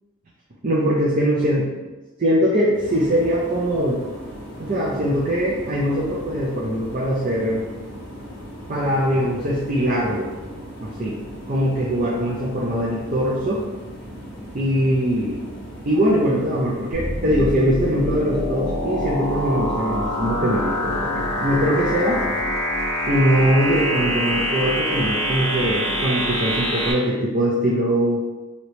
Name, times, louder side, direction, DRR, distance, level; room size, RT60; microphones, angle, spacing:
voice 1, 0.6-1.7 2.2-4.0 4.6-7.6 8.7-10.3 10.8-11.2 11.5-13.6 14.5-15.4 15.9-22.2 23.1-28.2, equal, 40° right, -5 dB, 0.5 m, -21 dB
sound 1, 2.7-22.4, left 1 dB, 50° left, 0.7 m, -42 dB
sound 2, 2.8-17.5, equal, 10° right, 1.1 m, -40 dB
sound 3, 16.9-26.9, equal, 10° left, 1.4 m, -25 dB
3.0 x 2.8 x 3.0 m, 1.2 s
head